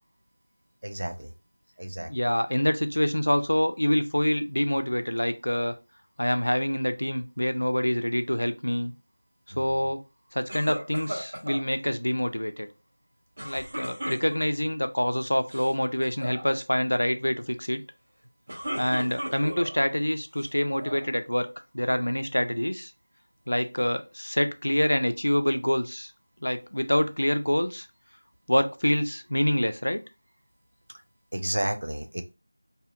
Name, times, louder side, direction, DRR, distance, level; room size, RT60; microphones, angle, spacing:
voice 1, 0.8-1.3 1.8-2.1 9.5-9.7 31.3-32.2, right 1 dB, 55° right, 7 dB, 0.4 m, -31 dB
voice 2, 2.0-5.7 6.2-8.9 9.6-10.0 10.3-12.7 13.4-17.8 18.8-21.5 21.7-22.9 23.5-26.1 26.4-27.9 28.5-30.0, equal, 75° left, 8 dB, 0.4 m, -26 dB
sound 1, 10.5-11.6 13.4-14.7 15.4-15.7 16.0-16.4 18.2-19.8 20.4-21.1, equal, 30° right, 0.9 m, -36 dB
2.7 x 2.5 x 2.2 m, 0.28 s
figure-of-eight pair, 175°, 0 cm